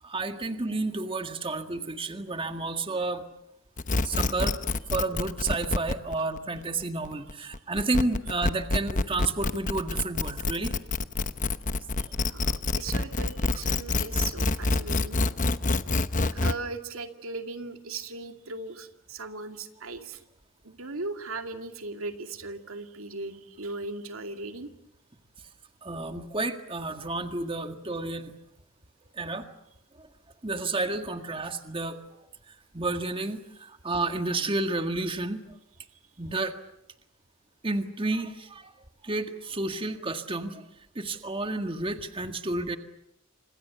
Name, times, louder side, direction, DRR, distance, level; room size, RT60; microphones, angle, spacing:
voice 1, 0.0-3.2 4.0-4.6 4.9-10.8 12.2-12.3 25.8-28.3 29.1-29.5 29.9-30.1 30.4-35.4 36.2-36.5 37.6-38.7 39.0-42.8, right 2 dB, 25° right, 6 dB, 1.8 m, -31 dB
sound 1, 3.8-16.5, left 3 dB, 40° left, 1.0 m, -27 dB
voice 2, 12.0-15.2 16.3-20.2 20.6-24.7, right 3 dB, 90° right, 6 dB, 2.4 m, -38 dB
29.5 x 26.5 x 6.9 m, 0.81 s
head